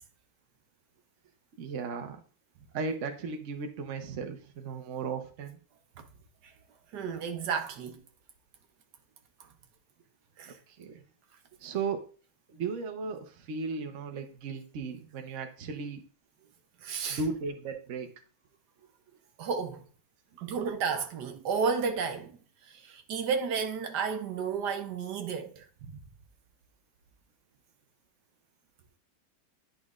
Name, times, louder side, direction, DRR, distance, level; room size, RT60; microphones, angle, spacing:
voice 1, 1.6-2.2 2.7-5.6 10.8-11.0 11.6-12.0 12.5-16.0 17.1-18.1, right 4 dB, 50° right, 1.0 m, -36 dB
voice 2, 6.9-8.0 9.4-9.5 10.4-10.6 16.8-17.2 19.4-19.9 20.4-26.0, right 5 dB, 70° right, 1.4 m, -32 dB
10.5 x 5.1 x 2.4 m
omnidirectional pair, 1.9 m